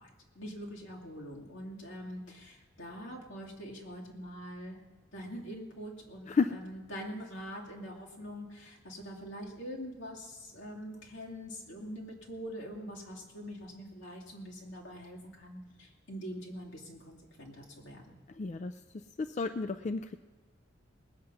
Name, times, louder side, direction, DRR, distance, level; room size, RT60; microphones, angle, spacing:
voice 1, 0.0-4.8 5.1-18.2, equal, 80° left, -2 dB, 2.5 m, -44 dB
voice 2, 18.4-18.7 19.2-20.2, left 4 dB, 40° left, 8 dB, 0.3 m, -31 dB
19.5 x 7.7 x 5.5 m, 1.3 s
head